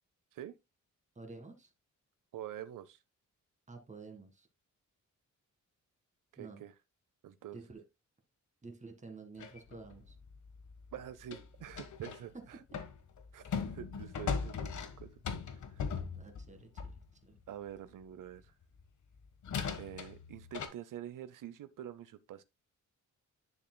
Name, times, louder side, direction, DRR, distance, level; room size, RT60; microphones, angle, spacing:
voice 1, 1.1-1.7 3.7-4.5 6.4-6.6 7.5-7.8 8.6-10.2 12.3-12.4 12.7-12.8 16.2-17.4, right 3 dB, 25° right, 1.8 m, -50 dB
voice 2, 2.3-3.0 6.3-6.7 7.2-7.6 10.9-12.6 13.3-14.7 15.0-15.2 15.5-15.9 17.5-18.5 19.8-22.4, right 11 dB, 85° right, 0.7 m, -46 dB
sound 1, 9.4-12.2 12.7-17.1 18.8-18.9 19.4-20.7, left 6 dB, 70° left, 1.4 m, -39 dB
10.5 x 6.9 x 2.2 m
wide cardioid pair, 160°, 31 cm